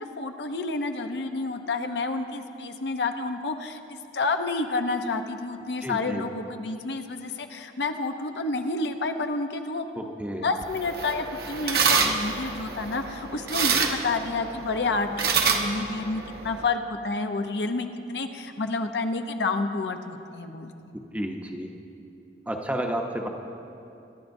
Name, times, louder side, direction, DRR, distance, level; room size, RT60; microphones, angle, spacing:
voice 1, 0.2-9.9 10.4-20.7, left 3 dB, 75° left, 6 dB, 0.7 m, -29 dB
voice 2, 5.8-6.3 10.0-10.5 21.1-21.7 22.5-23.3, right 1 dB, 10° right, 2 dB, 0.7 m, -31 dB
sound 1, 10.6-16.7, right 5 dB, 60° right, 0.9 m, -27 dB
23.5 x 11.0 x 2.6 m, 2.8 s
head